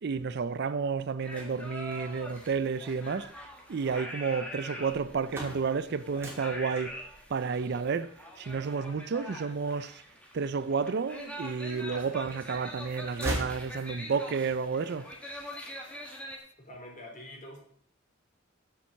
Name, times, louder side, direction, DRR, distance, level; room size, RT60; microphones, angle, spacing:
voice 1, 0.0-3.3 3.7-7.0 7.3-8.1 8.4-10.0 10.3-15.1, right 5 dB, 55° right, 0.4 m, -31 dB
sound 1, 1.2-16.4, equal, 5° left, 1.6 m, -44 dB
sound 2, 5.2-11.0 11.5-12.4 12.7-14.3, equal, 10° right, 2.6 m, -41 dB
voice 2, 16.6-17.6, left 1 dB, 40° left, 3.3 m, -45 dB
7.6 x 7.0 x 7.3 m
head